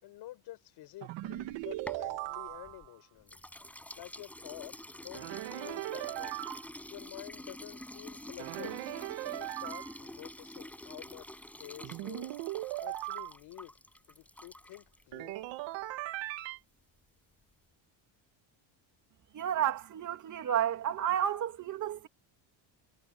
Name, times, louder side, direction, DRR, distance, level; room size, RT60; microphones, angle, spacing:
voice 1, 0.0-3.4 4.0-6.4 6.9-8.8 9.2-12.4 12.8-13.7 14.1-15.6, left 15 dB, 50° left, 5.5 m, -49 dB
sound 1, 1.0-2.9 5.1-6.7 8.4-10.0 11.8-13.3 15.1-16.6, right 17 dB, 65° right, 2.2 m, -38 dB
sound 2, 1.3-2.9 3.3-15.0, left 1 dB, 5° left, 6.5 m, -48 dB
voice 2, 19.3-22.1, right 10 dB, 35° right, 3.0 m, -31 dB
cardioid pair, 170°, 49 cm